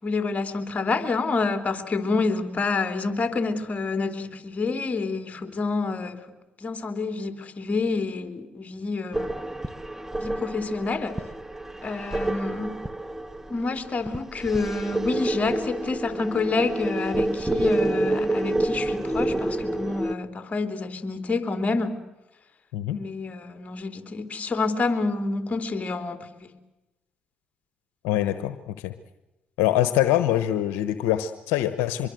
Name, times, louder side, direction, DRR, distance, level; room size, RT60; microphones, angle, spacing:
voice 1, 0.0-6.2 6.6-9.3 10.2-11.2 11.8-12.8 13.5-22.0 22.9-26.5, left 3 dB, 35° left, 8 dB, 3.5 m, -28 dB
sound 1, 9.1-20.1, right 1 dB, 10° right, 1.4 m, -28 dB
voice 2, 28.0-28.9 29.6-32.1, left 13 dB, 85° left, 11 dB, 1.1 m, -24 dB
24.5 x 22.5 x 7.9 m, 1.0 s
supercardioid pair, 55°, 4 cm